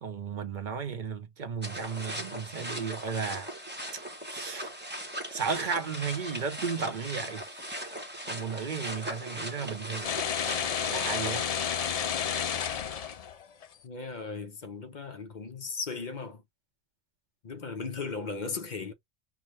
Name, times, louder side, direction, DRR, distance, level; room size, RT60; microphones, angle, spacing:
voice 1, 0.0-3.5 3.9-4.0 4.3-4.8 5.3-7.8 8.2-10.2 10.9-11.4, right 6 dB, 50° right, 0.8 m, -34 dB
sound 1, 1.6-11.4, equal, 10° right, 0.8 m, -39 dB
sound 2, 10.0-13.7, left 8 dB, 65° left, 0.3 m, -31 dB
voice 2, 13.8-16.4 17.4-18.9, left 4 dB, 45° left, 0.8 m, -37 dB
5.9 x 2.2 x 3.0 m
omnidirectional pair, 1.2 m